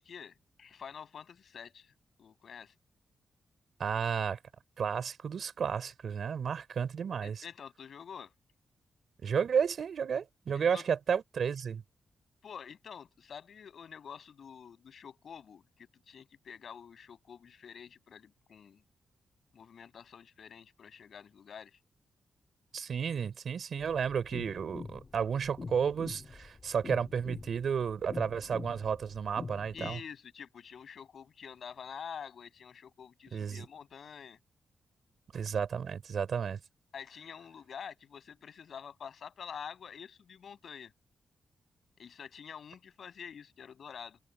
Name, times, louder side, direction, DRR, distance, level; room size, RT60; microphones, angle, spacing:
voice 1, 0.0-1.9 2.2-2.7 7.2-8.3 10.7-10.9 12.4-18.8 19.5-21.8 29.7-34.4 36.9-40.9 42.0-44.2, left 7 dB, 65° left, 7.1 m, -47 dB
voice 2, 3.8-4.4 4.8-7.4 9.2-11.8 22.7-30.0 33.3-33.6 35.3-36.6, right 7 dB, 65° right, 4.3 m, -32 dB
sound 1, 23.8-30.0, left 4 dB, 35° left, 2.3 m, -45 dB
cardioid pair, 100°, 0 cm